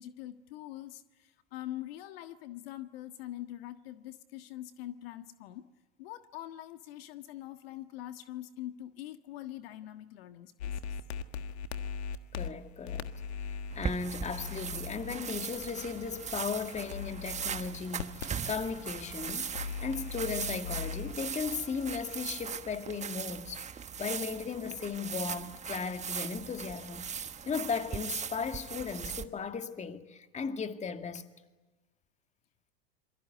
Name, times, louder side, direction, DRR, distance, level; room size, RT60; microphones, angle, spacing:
voice 1, 0.0-5.6 6.0-10.8, left 13 dB, 70° left, 1.6 m, -44 dB
sound 1, 10.6-22.5, left 6 dB, 85° left, 1.6 m, -41 dB
voice 2, 12.3-13.1 13.7-31.2, left 5 dB, 20° left, 2.1 m, -36 dB
sound 2, 13.7-29.2, right 7 dB, 20° right, 1.3 m, -39 dB
27.0 x 23.5 x 9.3 m
hypercardioid pair, 100°, 31 cm